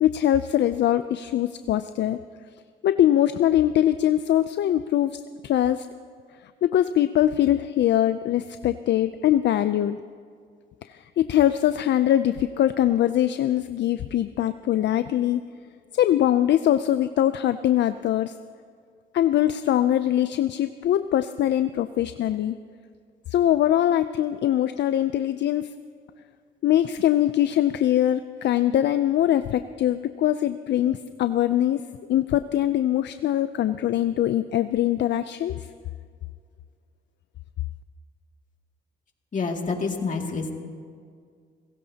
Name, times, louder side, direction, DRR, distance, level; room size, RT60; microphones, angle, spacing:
voice 1, 0.0-2.2 2.8-5.9 6.6-10.0 10.9-15.4 15.9-18.3 19.1-22.6 23.3-25.7 26.6-31.8 32.1-35.6, left 12 dB, 65° left, 11 dB, 0.5 m, -22 dB
voice 2, 39.3-40.5, left 4 dB, 40° left, 2 dB, 2.4 m, -27 dB
28.5 x 16.5 x 2.8 m, 2.1 s
cardioid pair, 90°, 20 cm